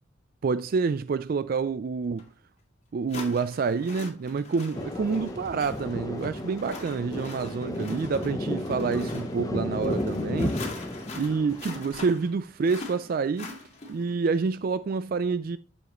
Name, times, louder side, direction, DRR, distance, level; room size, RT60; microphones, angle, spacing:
voice 1, 0.4-2.2 2.9-10.5 11.2-13.5 13.9-15.6, right 4 dB, 50° right, 0.3 m, -28 dB
sound 1, 2.2-2.3 3.1-14.2, left 3 dB, 35° left, 2.5 m, -43 dB
Thunder, 4.7-11.8, left 1 dB, 20° left, 0.8 m, -33 dB
11.0 x 7.1 x 3.0 m
head